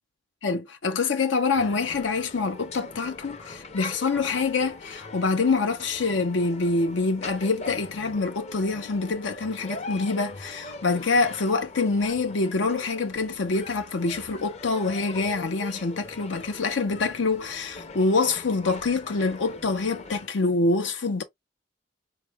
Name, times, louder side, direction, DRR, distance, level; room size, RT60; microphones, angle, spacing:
voice 1, 0.4-21.2, left 3 dB, 80° left, 0.7 m, -26 dB
sound 1, 1.6-20.3, left 3 dB, 35° left, 0.6 m, -42 dB
4.5 x 2.3 x 3.4 m
head